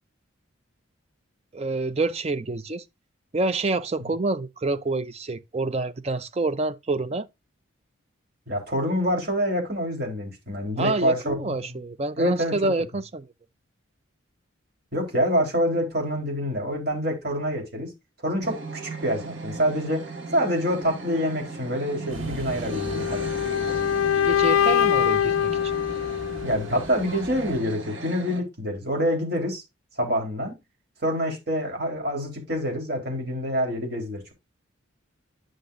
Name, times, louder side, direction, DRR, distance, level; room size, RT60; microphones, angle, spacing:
voice 1, 1.5-2.8 3.3-7.3 10.8-13.3 24.1-25.5, right 2 dB, 30° right, 0.5 m, -27 dB
voice 2, 8.5-11.8 12.2-12.7 14.9-17.9 18.2-20.0 20.3-23.3 26.4-29.6 30.0-30.6 31.0-34.3, equal, 50° right, 3.6 m, -26 dB
sound 1, 18.4-28.4, right 3 dB, 65° right, 1.7 m, -37 dB
sound 2, 22.1-27.6, equal, 80° right, 2.3 m, -39 dB
sound 3, 22.7-26.7, left 9 dB, 80° left, 0.4 m, -23 dB
9.7 x 6.4 x 2.5 m
head